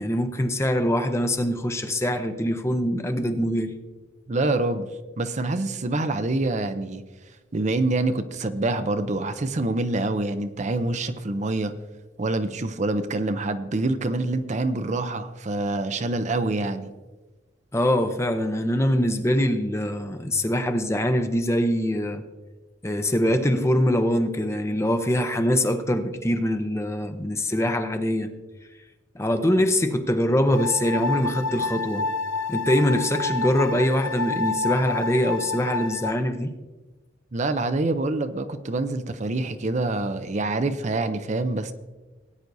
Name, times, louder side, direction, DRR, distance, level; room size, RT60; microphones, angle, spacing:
voice 1, 0.0-3.7 17.7-22.2 22.8-28.3 29.1-32.0 32.5-36.5, left 1 dB, 15° left, 0.6 m, -23 dB
voice 2, 4.3-4.9 5.2-7.0 7.5-11.7 12.2-16.9 37.3-41.7, right 2 dB, 40° right, 0.5 m, -26 dB
sound 1, 30.5-36.1, left 3 dB, 80° left, 0.8 m, -29 dB
18.0 x 9.4 x 2.6 m
head